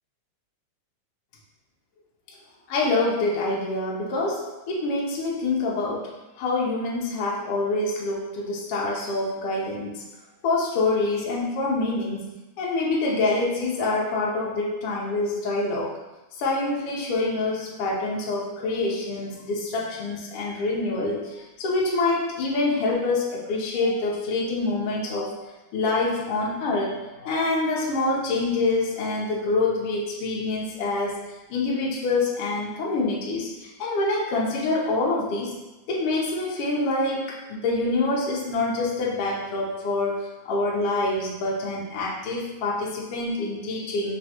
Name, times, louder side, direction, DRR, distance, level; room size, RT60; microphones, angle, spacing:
voice 1, 2.7-6.1 6.4-10.0 10.4-12.3 12.6-15.9 16.4-25.4 25.7-31.1 31.5-35.5 35.9-44.2, left 2 dB, 80° left, -3 dB, 1.3 m, -26 dB
4.5 x 3.0 x 2.8 m, 1.1 s
omnidirectional pair, 3.5 m